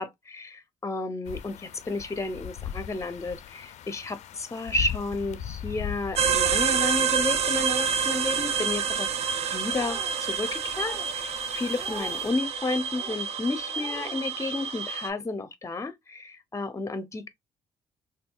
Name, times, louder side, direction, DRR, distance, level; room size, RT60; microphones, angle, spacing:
voice 1, 0.0-9.1 9.5-17.3, left 2 dB, 25° left, 0.7 m, -32 dB
sound 1, 1.2-12.3, left 9 dB, 65° left, 0.4 m, -40 dB
sound 2, 6.2-15.1, right 7 dB, 55° right, 0.4 m, -28 dB
sound 3, 9.6-10.2 10.7-11.1 11.7-12.2 12.8-13.2 13.7-14.2, right 1 dB, 20° right, 1.9 m, -43 dB
3.5 x 2.3 x 2.2 m
cardioid pair, 80°, 12 cm